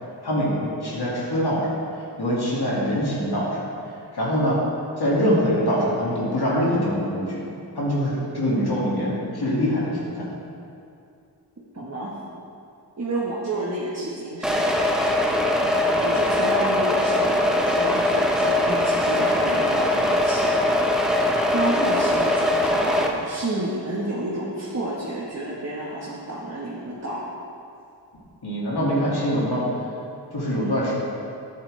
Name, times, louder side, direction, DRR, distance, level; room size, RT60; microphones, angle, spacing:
voice 1, 0.2-1.7 2.2-3.7 4.1-4.6 5.0-7.4 7.7-10.3 15.5-15.7 28.4-29.6 30.3-30.9, equal, 65° left, -6 dB, 2.3 m, -24 dB
voice 2, 11.7-12.2 13.0-14.9 16.0-21.0 21.5-27.3, right 2 dB, 40° right, -5 dB, 1.4 m, -30 dB
sound 1, 14.4-23.1, left 1 dB, ahead, 0.9 m, -21 dB
10.5 x 8.2 x 3.3 m, 2.6 s
wide cardioid pair, 65°, 42 cm